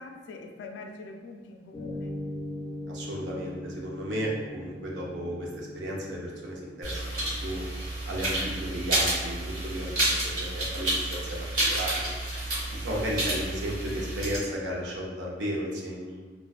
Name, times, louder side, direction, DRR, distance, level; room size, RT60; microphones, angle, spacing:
voice 1, 0.0-2.1, left 3 dB, 85° left, 3 dB, 0.3 m, -43 dB
sound 1, 1.7-8.3, left 1 dB, 5° left, 0.3 m, -40 dB
voice 2, 2.9-7.6 8.0-12.1 12.7-16.3, equal, 75° right, -2 dB, 0.5 m, -34 dB
sound 2, 6.8-14.4, right 1 dB, 50° right, 0.9 m, -30 dB
2.4 x 2.2 x 2.3 m, 1.4 s
head